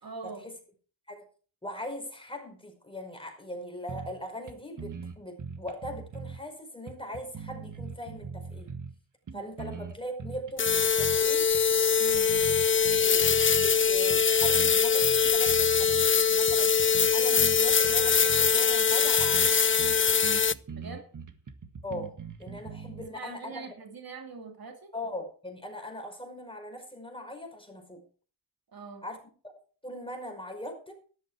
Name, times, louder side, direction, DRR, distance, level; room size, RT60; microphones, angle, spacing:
voice 1, 0.0-0.5 9.3-9.7 12.0-12.3 20.7-21.1 23.0-24.9 28.7-29.1, right 4 dB, 70° right, 2.7 m, -43 dB
voice 2, 1.6-8.7 9.3-11.5 12.9-16.8 17.1-19.5 21.8-23.7 24.9-28.0 29.0-29.2 29.8-30.9, left 1 dB, 15° left, 5.2 m, -40 dB
sound 1, 3.9-4.2 4.5-4.6 4.8-6.4 6.9-9.0 9.3-11.2 11.5-11.7 12.1-13.8 14.1-14.7 15.0-16.1 16.5-18.5 18.9-19.0 19.2-19.5 19.8-23.1, right 5 dB, 55° right, 1.8 m, -41 dB
sound 2, 10.6-20.5, left 6 dB, 35° left, 0.6 m, -23 dB
13.0 x 12.0 x 4.8 m
cardioid pair, 85°, 37 cm